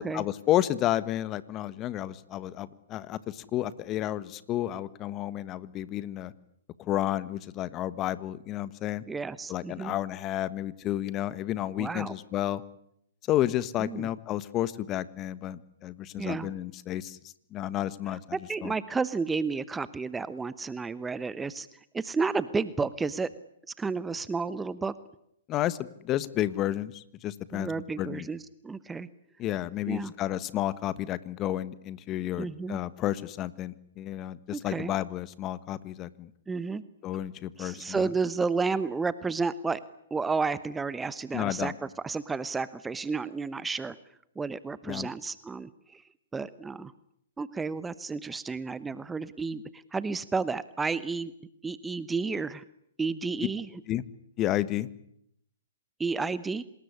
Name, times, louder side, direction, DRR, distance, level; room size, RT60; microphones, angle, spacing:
voice 1, 0.0-6.3 6.8-9.0 9.5-12.6 13.3-18.2 18.6-18.7 25.5-25.8 26.0-27.7 28.0-28.3 29.4-36.3 37.0-38.1 41.3-41.7 44.9-45.1 53.9-54.0 54.4-54.9, left 13 dB, 30° left, 17 dB, 1.4 m, -31 dB
voice 2, 9.1-9.9 11.8-12.1 13.8-14.1 16.2-16.5 18.1-23.3 23.8-24.9 27.5-29.1 29.9-30.1 32.4-32.8 34.5-34.9 36.5-36.8 37.6-39.8 40.1-44.0 44.4-46.0 46.3-46.9 47.4-51.3 51.6-52.6 53.0-53.7 56.0-56.6, right 4 dB, 10° right, 17 dB, 1.0 m, -31 dB
26.5 x 20.0 x 9.9 m, 0.74 s
hypercardioid pair, 125°, 0 cm